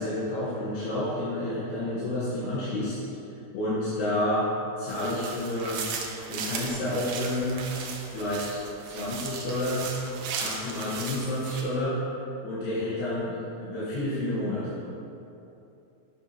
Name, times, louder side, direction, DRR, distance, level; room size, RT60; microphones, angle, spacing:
voice 1, 0.0-2.9 3.5-4.5 4.8-5.8 6.3-7.6 8.1-8.6 8.9-9.9 10.4-12.0 12.4-14.8, left 1 dB, 75° left, -10 dB, 3.0 m, -30 dB
sound 1, 4.9-11.6, right 5 dB, 80° right, 2.1 m, -37 dB
8.4 x 7.0 x 2.8 m, 2.8 s
omnidirectional pair, 4.8 m